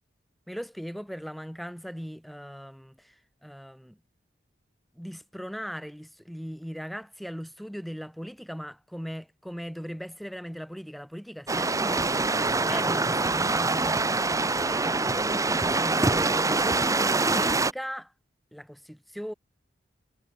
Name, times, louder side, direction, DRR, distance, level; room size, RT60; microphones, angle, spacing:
voice 1, 0.5-3.1 3.4-4.0 4.9-18.1 18.5-19.3, equal, ahead, 6.7 m, -39 dB
sound 1, 11.5-17.7, right 3 dB, 20° right, 1.1 m, -25 dB
head